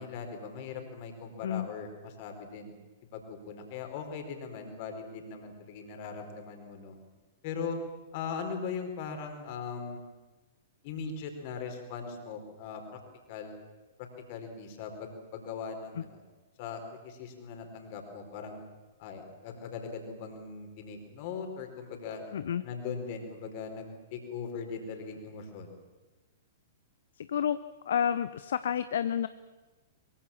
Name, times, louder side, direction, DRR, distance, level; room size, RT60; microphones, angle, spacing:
voice 1, 0.0-2.7 3.1-7.0 7.4-7.8 8.1-10.0 10.8-13.0 13.3-13.5 14.0-16.2 16.6-18.6 19.0-22.2 22.6-25.7, left 5 dB, 40° left, 5 dB, 4.7 m, -40 dB
voice 2, 22.3-22.6 27.2-27.6 27.9-29.3, left 9 dB, 60° left, 14 dB, 0.8 m, -30 dB
23.0 x 23.0 x 7.3 m, 1.2 s
figure-of-eight pair, 105°, 0 cm